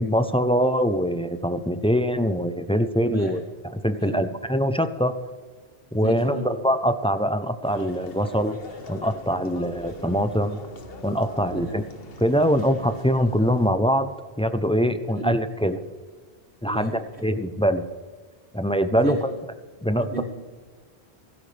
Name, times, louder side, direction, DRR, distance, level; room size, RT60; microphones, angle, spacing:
voice 1, 0.0-5.1 5.9-8.6 8.9-10.6 11.0-11.8 12.2-14.1 14.4-15.8 16.6-17.8 18.5-19.3 19.8-20.2, equal, 5° left, 9 dB, 0.5 m, -23 dB
voice 2, 5.9-6.5 11.5-11.8 15.1-15.3 16.6-17.3 18.9-19.2 20.0-20.2, right 1 dB, 80° right, -6 dB, 5.0 m, -33 dB
sound 1, 7.6-13.7, left 2 dB, 65° left, 1.5 m, -41 dB
16.5 x 16.0 x 3.4 m, 1.4 s
omnidirectional pair, 1.1 m